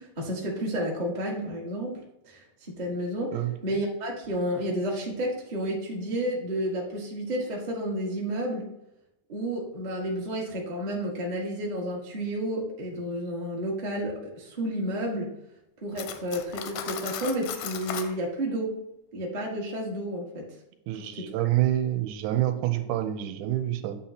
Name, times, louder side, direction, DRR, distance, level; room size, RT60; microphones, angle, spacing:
voice 1, 0.0-2.0 2.2-3.4 3.6-8.7 9.3-15.3 15.8-18.7 19.1-20.5 20.9-21.5, right 1 dB, 65° right, -3 dB, 0.4 m, -31 dB
Cutlery silverware, 16.0-18.1, left 9 dB, 85° left, 2.0 m, -36 dB
voice 2, 20.9-24.0, right 13 dB, 85° right, 7 dB, 2.1 m, -27 dB
8.5 x 2.9 x 5.6 m, 0.86 s
omnidirectional pair, 3.6 m